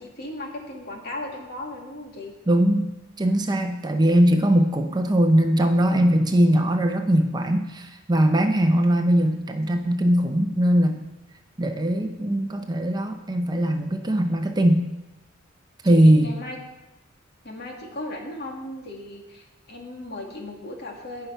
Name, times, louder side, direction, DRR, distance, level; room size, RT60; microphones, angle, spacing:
voice 1, 0.0-2.3 15.8-16.6 17.4-21.3, left 1 dB, 55° left, 0 dB, 2.3 m, -36 dB
voice 2, 2.5-2.9 3.2-11.0 11.6-14.9 15.8-16.3, right 1 dB, 20° right, 5 dB, 0.7 m, -20 dB
17.0 x 5.8 x 5.7 m, 1.0 s
head